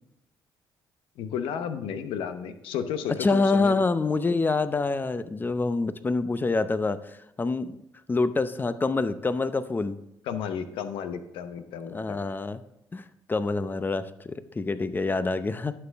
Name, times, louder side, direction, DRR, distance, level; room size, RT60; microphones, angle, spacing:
voice 1, 1.2-3.8 10.3-12.2, left 8 dB, 80° left, 9 dB, 0.8 m, -33 dB
voice 2, 3.2-7.7 8.1-10.0 11.9-12.6 12.9-15.7, left 3 dB, 20° left, 13 dB, 0.6 m, -26 dB
11.0 x 6.8 x 3.5 m, 0.83 s
cardioid pair, 80°, 9 cm